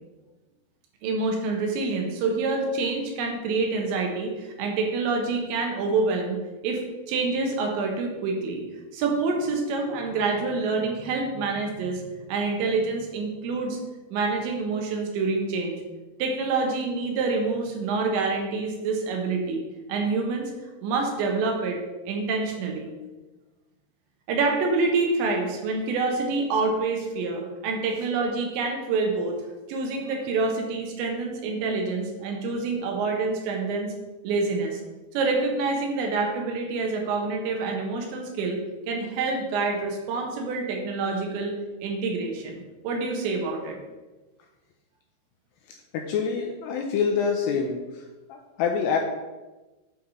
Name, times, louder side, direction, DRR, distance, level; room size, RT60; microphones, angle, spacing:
voice 1, 1.0-6.8 7.1-8.6 8.9-13.8 14.1-15.8 16.2-19.6 19.9-20.5 20.8-21.8 22.1-22.9 24.3-29.4 29.7-33.9 34.2-34.8 35.1-38.6 38.9-41.5 41.8-43.8, right 3 dB, 75° right, 2 dB, 3.2 m, -27 dB
voice 2, 45.9-47.8 48.3-49.0, left 6 dB, 85° left, 2 dB, 2.5 m, -25 dB
9.1 x 3.6 x 5.5 m, 1.2 s
omnidirectional pair, 5.5 m